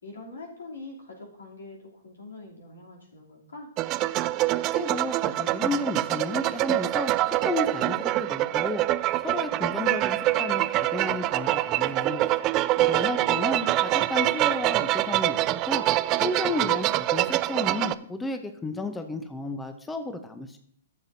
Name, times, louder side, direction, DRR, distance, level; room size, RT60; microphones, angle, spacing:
voice 1, 0.0-3.7 12.8-13.6, left 2 dB, 80° left, -2 dB, 2.9 m, -44 dB
sound 1, 3.8-17.9, right 16 dB, 35° right, 0.3 m, -25 dB
voice 2, 4.5-8.8 9.2-12.2 12.8-15.4 15.7-15.8 16.2-20.6, left 2 dB, 10° left, 7 dB, 0.7 m, -33 dB
13.0 x 7.3 x 2.7 m, 0.64 s
hypercardioid pair, 125°, 0 cm